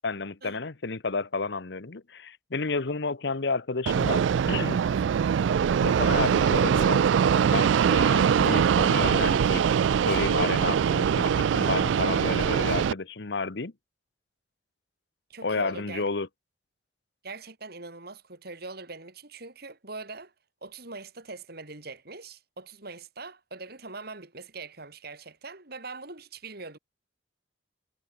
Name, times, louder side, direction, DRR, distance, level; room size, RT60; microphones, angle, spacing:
voice 1, 0.0-4.8 5.8-9.6 10.1-13.7 15.4-16.3, left 4 dB, 65° left, 1.0 m, -31 dB
Fixed-wing aircraft airplane, 3.9-12.9, right 7 dB, 90° right, 0.3 m, -23 dB
voice 2, 15.3-16.1 17.2-20.3 20.6-26.8, right 3 dB, 60° right, 4.9 m, -42 dB
head